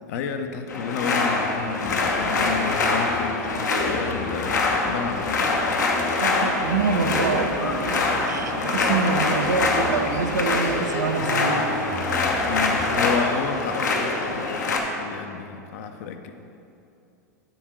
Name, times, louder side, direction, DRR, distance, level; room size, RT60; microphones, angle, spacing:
voice 1, 0.1-5.5 12.5-16.3, left 6 dB, 60° left, 6 dB, 0.6 m, -31 dB
sound 1, 0.7-14.8, left 3 dB, 75° left, 0.9 m, -24 dB
sound 2, 1.9-13.7, left 2 dB, 5° left, 0.7 m, -37 dB
voice 2, 6.2-11.7 12.0-12.1, right 5 dB, 80° right, 7 dB, 0.6 m, -26 dB
sound 3, 6.6-13.2, right 3 dB, 35° right, 1.0 m, -37 dB
7.8 x 3.6 x 6.2 m, 2.7 s
hypercardioid pair, 100°, 10 cm